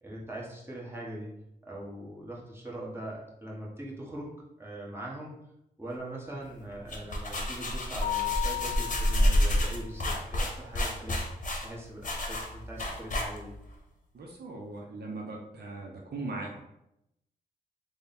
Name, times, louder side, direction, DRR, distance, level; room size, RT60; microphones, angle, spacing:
voice 1, 0.0-1.3 1.6-4.3 4.6-5.4 5.8-11.2 11.6-13.5, right 1 dB, 15° right, -4 dB, 1.3 m, -41 dB
sound 1, 6.7-13.7, left 1 dB, 45° left, 0.9 m, -29 dB
Mallet percussion, 8.0-9.8, left 16 dB, 85° left, 0.7 m, -34 dB
voice 2, 14.1-16.7, right 2 dB, 65° right, 0 dB, 0.6 m, -39 dB
3.3 x 2.2 x 4.1 m, 0.83 s
cardioid pair, 45°, 18 cm